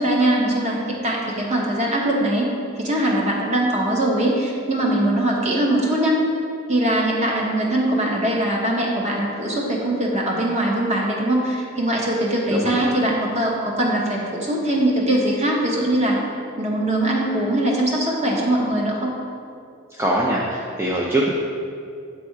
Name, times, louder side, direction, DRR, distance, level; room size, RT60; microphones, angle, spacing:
voice 1, 0.0-2.5 2.8-6.2 6.7-16.2 16.6-19.1, right 1 dB, 35° right, -2 dB, 1.0 m, -21 dB
voice 2, 20.0-21.3, right 1 dB, 10° right, -4 dB, 0.4 m, -22 dB
7.3 x 3.4 x 4.5 m, 2.4 s
head